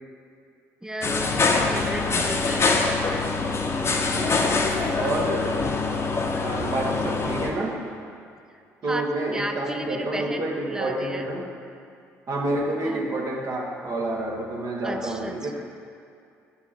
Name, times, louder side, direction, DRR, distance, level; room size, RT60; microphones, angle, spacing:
voice 1, 0.8-2.9 8.8-10.4 10.6-11.2 12.8-13.2 14.8-15.5, right 1 dB, 10° right, 6 dB, 0.5 m, -34 dB
sound 1, 1.0-7.5, left 4 dB, 40° left, 0.7 m, -24 dB
voice 2, 4.1-4.7 5.0-5.6 6.4-7.8 8.8-11.4 12.3-15.7, right 1 dB, 55° right, -2 dB, 1.2 m, -29 dB
8.7 x 4.4 x 2.9 m, 2.4 s
hypercardioid pair, 60°, 7 cm